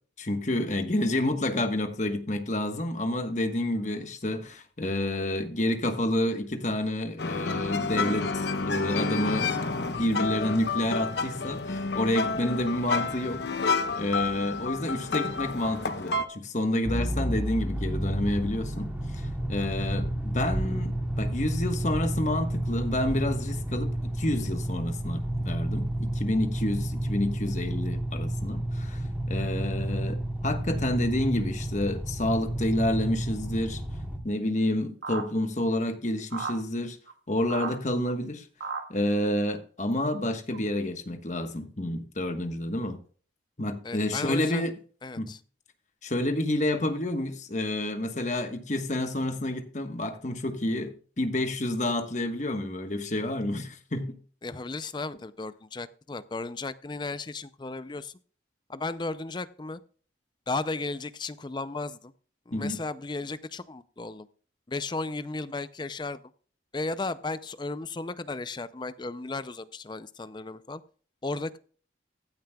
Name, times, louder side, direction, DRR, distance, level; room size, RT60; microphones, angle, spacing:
voice 1, 0.2-9.6 9.9-13.4 14.0-33.8 34.2-37.0 37.3-38.5 38.9-43.0 43.6-44.7 45.2-45.3 46.0-54.1 62.5-62.8, left 1 dB, 40° left, 1.2 m, -29 dB
sound 1, 7.2-16.3, left 3 dB, 65° left, 0.9 m, -30 dB
sound 2, 16.8-34.2, right 1 dB, 10° right, 2.4 m, -31 dB
sound 3, 35.0-35.2 36.3-36.6 37.1-37.2 37.5-37.7 38.1-38.2 38.6-38.8 39.9-40.0 40.5-40.6, right 4 dB, 85° right, 1.9 m, -33 dB
voice 2, 43.8-44.7 45.0-45.4 54.4-58.2 58.7-59.8 60.5-62.1 62.5-64.3 64.7-66.2 66.7-70.8 71.2-71.6, left 3 dB, 25° left, 0.4 m, -35 dB
15.5 x 9.3 x 2.3 m
head